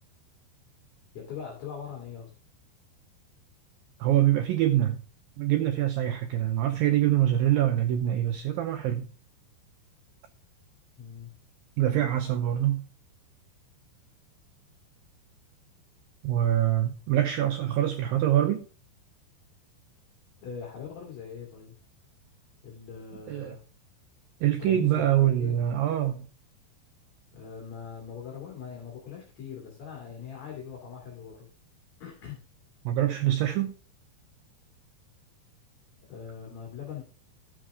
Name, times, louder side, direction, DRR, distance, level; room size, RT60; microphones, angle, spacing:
voice 1, 1.1-2.3 11.0-11.3 20.4-21.7 22.6-23.6 24.4-25.6 27.3-31.5 32.0-32.4 36.0-37.0, left 7 dB, 45° left, 3.1 m, -41 dB
voice 2, 4.0-5.0 5.4-9.1 11.8-12.9 16.2-18.7 23.3-23.5 24.4-26.3 32.9-33.7, right 12 dB, 85° right, 2.1 m, -25 dB
12.5 x 7.3 x 3.5 m
omnidirectional pair, 5.0 m